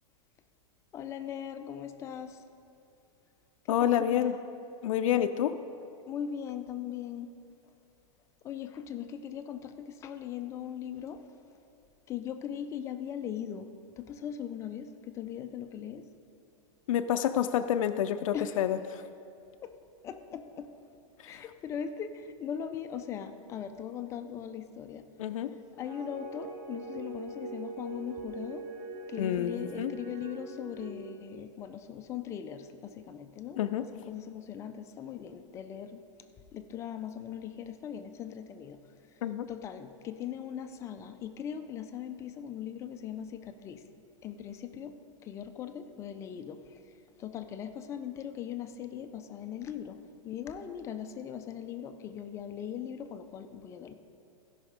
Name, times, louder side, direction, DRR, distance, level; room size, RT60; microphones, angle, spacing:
voice 1, 0.9-2.4 3.7-4.3 6.1-7.3 8.4-11.2 12.1-13.7 14.0-14.9 15.1-16.0 18.3-18.6 19.6-19.7 20.0-20.7 21.2-25.0 25.8-28.6 29.1-36.0 36.5-38.8 39.5-43.8 44.2-45.0 45.2-46.6 47.2-50.0 50.2-53.9, left 9 dB, 15° left, 8 dB, 0.4 m, -39 dB
voice 2, 3.7-4.4 4.8-5.5 16.9-19.0 21.2-21.4 25.2-25.5 29.2-29.9 33.6-33.8 39.2-39.5, left 10 dB, 75° left, 8 dB, 0.5 m, -28 dB
sound 1, 25.8-30.9, right 3 dB, 40° right, 2.7 m, -42 dB
16.0 x 5.5 x 5.1 m, 2.7 s
supercardioid pair, 160°, 17 cm